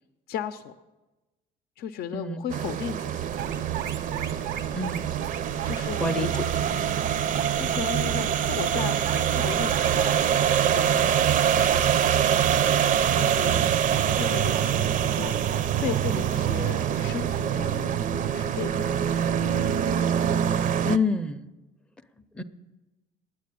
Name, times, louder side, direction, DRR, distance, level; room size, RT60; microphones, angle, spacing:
voice 1, 0.3-0.7 1.8-3.3 5.6-6.3 6.7-7.1 7.5-10.2 10.6-11.3 13.1-18.7, left 8 dB, 70° left, 10 dB, 0.6 m, -36 dB
voice 2, 2.1-2.5 4.7-5.1 6.0-6.5 20.8-21.4 22.4-22.5, left 3 dB, 5° left, 7 dB, 0.5 m, -27 dB
sound 1, 2.5-21.0, right 9 dB, 50° right, 0.5 m, -24 dB
sound 2, 3.2-20.0, right 6 dB, 90° right, 0.9 m, -41 dB
9.4 x 9.0 x 8.4 m, 1.1 s
cardioid pair, 110°, 17 cm